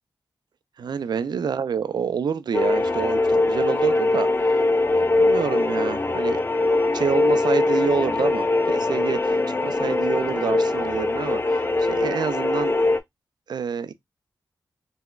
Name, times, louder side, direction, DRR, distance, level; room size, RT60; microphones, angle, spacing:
voice 1, 0.8-4.6 5.0-6.4 6.9-9.4 9.6-12.8 13.5-13.9, right 6 dB, 65° right, 0.3 m, -27 dB
sound 1, 2.5-13.0, left 2 dB, 25° left, 0.4 m, -22 dB
3.8 x 2.1 x 2.2 m
cardioid pair, 45°, 8 cm